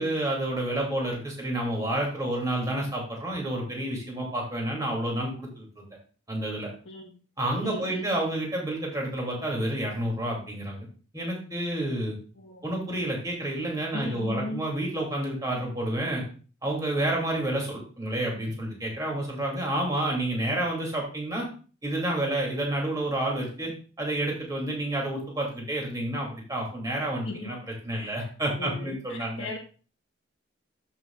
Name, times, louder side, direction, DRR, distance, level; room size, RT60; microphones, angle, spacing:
voice 1, 0.0-5.8 6.3-6.7 7.4-10.8 11.1-12.2 12.6-16.2 16.6-21.5 21.8-23.7 24.0-29.5, right 1 dB, 15° right, -2 dB, 2.5 m, -29 dB
voice 2, 7.6-8.1 12.4-12.6 13.9-14.6 27.2-27.5 27.9-29.6, left 2 dB, 75° left, -2 dB, 1.3 m, -37 dB
13.0 x 5.9 x 2.4 m, 0.38 s
head